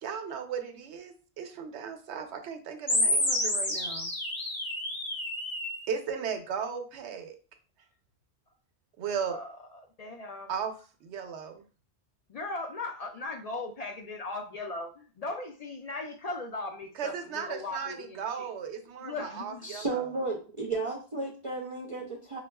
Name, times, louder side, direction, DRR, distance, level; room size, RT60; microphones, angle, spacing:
voice 1, 0.0-4.1 5.9-7.3 9.0-9.4 10.5-10.7 11.0-11.6 17.0-20.0, right 7 dB, 90° right, 6 dB, 0.9 m, -36 dB
sound 1, 2.9-5.9, left 1 dB, 20° left, 0.9 m, -29 dB
voice 2, 9.3-10.5 12.3-18.5 19.0-19.6, left 3 dB, 55° left, 3 dB, 0.4 m, -38 dB
voice 3, 19.6-22.4, right 3 dB, 45° right, 0 dB, 0.4 m, -33 dB
5.9 x 2.3 x 2.2 m, 0.38 s
omnidirectional pair, 1.1 m